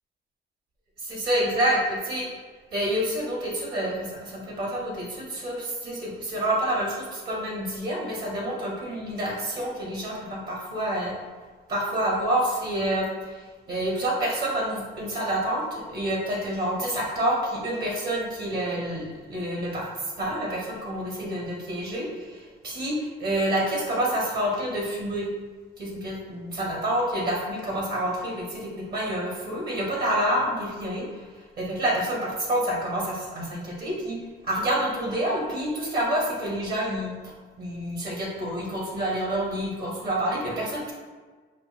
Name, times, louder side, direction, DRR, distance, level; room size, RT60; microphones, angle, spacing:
voice 1, 1.0-2.3 2.7-11.1 11.7-19.9 20.2-25.3 25.8-31.2 31.6-34.2 34.4-37.1 37.6-40.9, right 1 dB, 50° right, -3 dB, 1.0 m, -28 dB
5.0 x 2.4 x 2.4 m, 1.4 s
cardioid pair, 90°, 20 cm